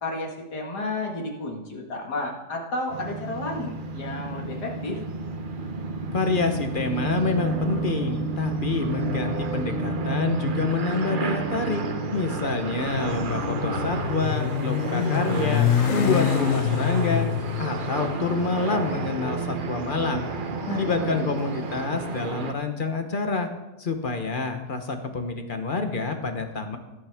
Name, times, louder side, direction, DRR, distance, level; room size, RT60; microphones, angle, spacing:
voice 1, 0.0-5.0 13.2-13.4 20.6-21.2, left 2 dB, 85° left, 0 dB, 2.5 m, -32 dB
sound 1, 2.9-22.5, right 3 dB, 40° right, 0.8 m, -31 dB
voice 2, 6.1-11.8 12.1-17.3 17.6-20.3 20.7-23.5 23.8-26.8, left 4 dB, 35° left, 6 dB, 1.0 m, -27 dB
Motorcycle, 12.5-20.7, left 10 dB, 65° left, 0.9 m, -27 dB
17.5 x 8.6 x 3.6 m, 1.0 s
omnidirectional pair, 1.7 m